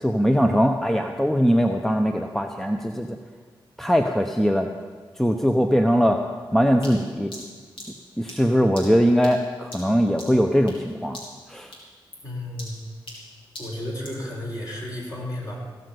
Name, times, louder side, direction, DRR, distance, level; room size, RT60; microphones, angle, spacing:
voice 1, 0.0-3.2 3.8-4.7 5.2-6.2 6.5-7.3 8.2-11.2 11.5-11.7, equal, 5° left, 4 dB, 0.9 m, -21 dB
sound 1, 6.8-10.9 11.1-11.5 11.7-14.3, left 1 dB, 70° left, 3.8 m, -42 dB
voice 2, 12.2-12.7 13.6-15.6, left 1 dB, 40° left, -3 dB, 5.4 m, -32 dB
16.5 x 6.6 x 7.8 m, 1.5 s
cardioid pair, 40°, 9 cm